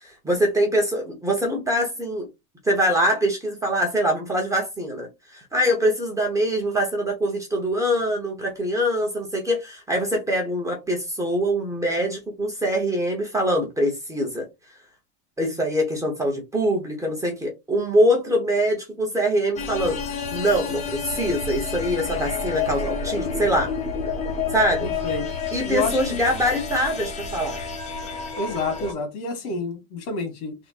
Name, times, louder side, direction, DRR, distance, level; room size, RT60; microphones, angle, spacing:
voice 1, 0.0-2.3 2.6-5.1 5.3-14.5 15.4-23.7 24.5-24.9 25.5-27.6, equal, 5° right, 0.8 m, -23 dB
sound 1, 19.6-28.9, left 5 dB, 15° left, 0.5 m, -29 dB
voice 2, 24.8-25.3 25.7-26.2 28.4-30.5, left 3 dB, 75° left, 1.9 m, -28 dB
3.6 x 2.1 x 4.0 m
supercardioid pair, 155°, 43 cm